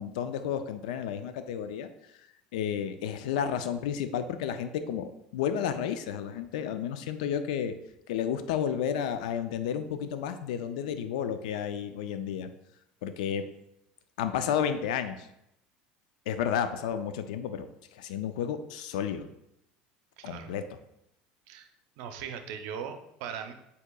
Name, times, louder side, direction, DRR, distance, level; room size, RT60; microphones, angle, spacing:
voice 1, 0.0-1.9 2.5-7.8 8.1-12.5 13.0-13.5 14.2-15.3 16.3-19.3 20.2-20.6, left 8 dB, 85° left, 9 dB, 0.3 m, -32 dB
voice 2, 20.2-20.5 21.5-21.7 22.0-23.5, right 7 dB, 70° right, 7 dB, 0.5 m, -39 dB
7.8 x 2.8 x 2.2 m, 0.80 s
supercardioid pair, 95°, 4 cm